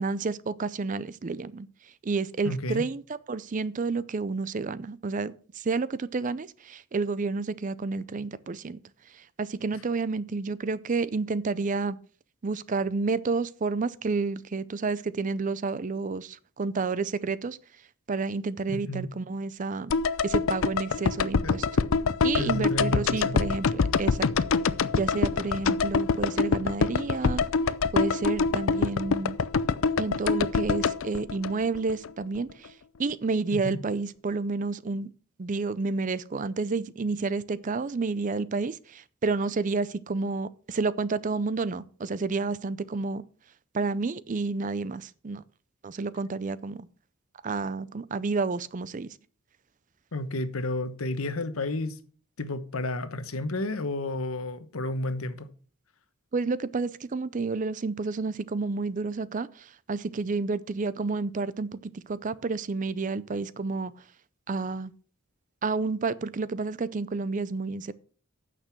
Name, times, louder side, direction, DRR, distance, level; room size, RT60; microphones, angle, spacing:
voice 1, 0.0-1.7 2.0-3.0 3.3-8.8 9.4-12.0 12.4-17.6 18.1-19.9 20.2-21.7 22.2-24.3 24.9-27.4 27.9-29.4 30.0-32.7 33.0-35.1 35.4-43.2 43.7-45.4 45.8-46.9 47.4-49.1 56.3-59.5 59.9-63.9 64.5-64.9 65.6-67.9, right 4 dB, 40° right, 0.5 m, -30 dB
voice 2, 2.4-2.8 18.7-19.1 21.4-21.5 21.9-22.1 22.4-23.4 33.5-33.8 50.1-52.0 52.4-55.5, left 2 dB, 90° left, 1.1 m, -31 dB
sound 1, 19.9-32.1 32.3-32.4, left 5 dB, 75° left, 0.5 m, -25 dB
9.1 x 6.7 x 5.9 m
head